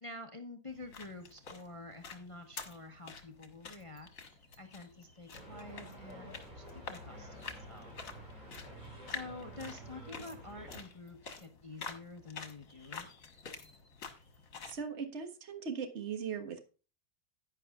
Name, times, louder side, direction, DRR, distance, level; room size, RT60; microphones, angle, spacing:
voice 1, 0.0-4.1 4.6-8.0 9.1-13.1, left 2 dB, 25° left, 5 dB, 1.0 m, -48 dB
sound 1, 0.7-14.8, left 5 dB, 60° left, 1.9 m, -49 dB
sound 2, 5.3-10.8, right 1 dB, 25° right, 3.9 m, -50 dB
voice 2, 14.6-16.6, right 6 dB, 45° right, 6 dB, 1.7 m, -39 dB
11.0 x 10.0 x 2.4 m, 0.35 s
omnidirectional pair, 1.7 m